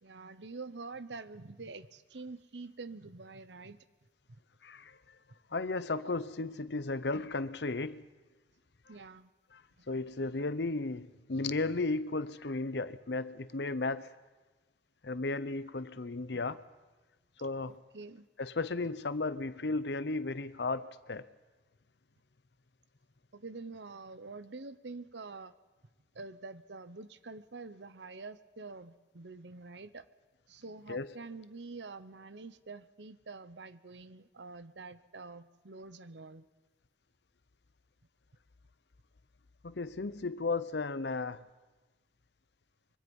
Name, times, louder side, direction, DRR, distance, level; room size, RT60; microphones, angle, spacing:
voice 1, 0.0-3.8 4.3-4.4 8.9-9.3 9.8-9.9 16.3-16.4 17.7-18.3 23.3-25.5 26.1-30.1 30.5-36.5, right 3 dB, 85° right, 1.0 m, -46 dB
voice 2, 4.6-5.0 5.5-8.0 9.5-9.6 9.9-14.1 15.0-16.6 17.4-17.8 18.4-21.2 30.9-31.1 39.6-41.4, left 3 dB, 75° left, 0.8 m, -34 dB
24.5 x 23.0 x 5.4 m
head